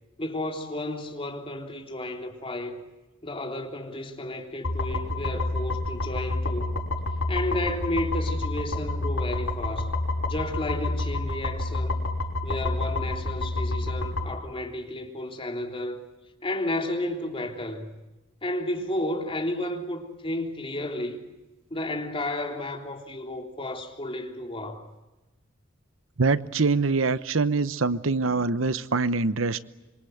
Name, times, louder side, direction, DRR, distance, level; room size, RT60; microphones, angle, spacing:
voice 1, 0.2-2.8 3.2-6.8 7.3-9.9 10.3-12.0 12.4-16.0 16.4-18.0 18.4-21.2 21.7-24.9, left 1 dB, 30° left, 3.5 m, -32 dB
sound 1, 4.6-14.3, left 2 dB, 75° left, 6.1 m, -29 dB
voice 2, 26.2-29.6, right 4 dB, 75° right, 0.9 m, -24 dB
26.5 x 24.0 x 8.0 m
head